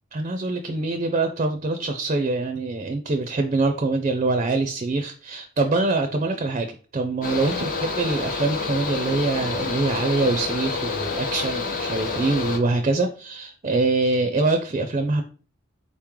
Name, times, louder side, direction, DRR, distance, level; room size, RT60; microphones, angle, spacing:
voice 1, 0.1-6.7 6.9-15.2, right 3 dB, 35° right, 6 dB, 0.4 m, -24 dB
Mechanical fan, 7.2-12.6, left 4 dB, 45° left, 0.8 m, -28 dB
4.0 x 3.0 x 3.6 m, 0.38 s
head